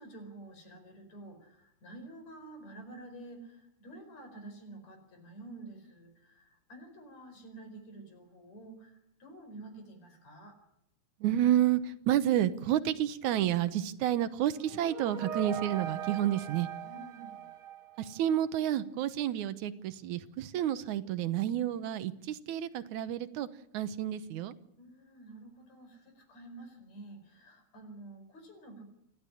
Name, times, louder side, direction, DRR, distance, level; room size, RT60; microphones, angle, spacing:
voice 1, 0.0-10.6 16.8-17.5 24.8-28.8, right 2 dB, 65° left, 7 dB, 6.0 m, -49 dB
voice 2, 11.2-16.7 18.0-23.5 23.7-24.6, right 11 dB, 80° right, 13 dB, 2.4 m, -30 dB
sound 1, 14.5-18.4, right 9 dB, 50° right, 2.1 m, -40 dB
28.0 x 12.0 x 9.9 m, 0.79 s
omnidirectional pair, 3.4 m